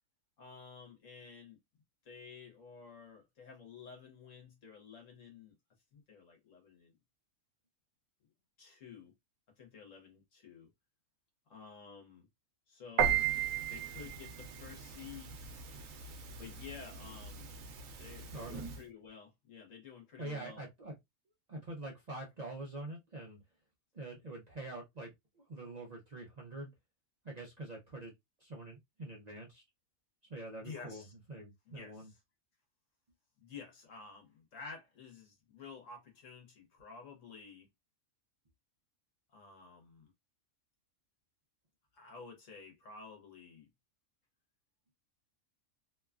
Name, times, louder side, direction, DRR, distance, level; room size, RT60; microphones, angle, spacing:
voice 1, 0.4-1.6 2.0-5.5 5.9-6.9 8.6-9.1 9.6-10.7 11.5-12.3 12.7-13.3 13.7-15.4 16.4-17.5 18.0-20.7 30.6-31.1 31.7-32.2 33.4-37.7 39.3-40.1 41.9-43.7, left 5 dB, 70° left, 1.3 m, -51 dB
Piano, 13.0-18.8, right 8 dB, 85° right, 1.1 m, -37 dB
voice 2, 18.3-18.7 20.2-20.9 21.5-23.4 23.9-26.7 27.2-28.1 28.4-29.6 30.3-32.1, right 2 dB, 40° right, 0.7 m, -45 dB
3.0 x 2.2 x 2.3 m
omnidirectional pair, 1.4 m